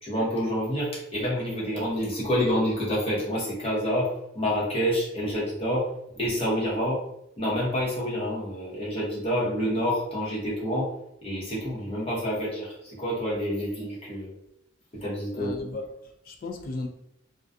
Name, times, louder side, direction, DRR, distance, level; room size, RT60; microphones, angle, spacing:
voice 1, 0.0-7.0 7.4-10.9 11.2-14.3 14.9-15.5, equal, 30° left, 0.8 m, -28 dB
voice 2, 15.3-16.9, left 2 dB, 50° left, 0.3 m, -36 dB
2.5 x 2.3 x 2.3 m
head